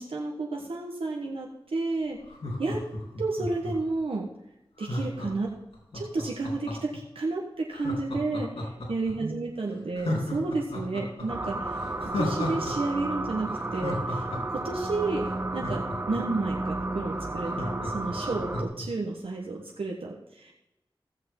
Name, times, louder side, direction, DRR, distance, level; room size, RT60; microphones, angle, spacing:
voice 1, 0.0-2.2 2.6-2.8 3.2-4.3 4.8-5.5 5.9-20.5, right 3 dB, 80° right, -1 dB, 1.3 m, -32 dB
Laughter, 2.2-3.9 4.8-7.0 7.7-9.1 9.5-9.6 9.9-12.7 13.0-13.1 13.5-16.4 16.8-16.9 17.1-18.9 19.2-19.3, left 1 dB, 80° left, 3.6 m, -34 dB
sound 1, 11.3-18.6, right 2 dB, 25° right, 1.0 m, -32 dB
15.0 x 7.7 x 3.8 m, 0.91 s
wide cardioid pair, 50°, 9 cm